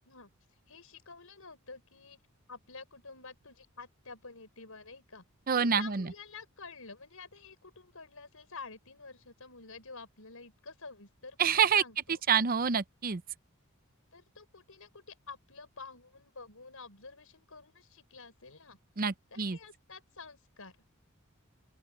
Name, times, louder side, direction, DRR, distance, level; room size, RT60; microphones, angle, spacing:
voice 1, 0.7-2.2 2.5-5.2 5.6-12.2 14.1-18.8 19.3-20.7, left 4 dB, 75° left, 5.1 m, -49 dB
voice 2, 5.5-6.1 11.4-11.8 12.3-13.2 19.0-19.6, right 7 dB, 45° right, 0.7 m, -27 dB
open air
head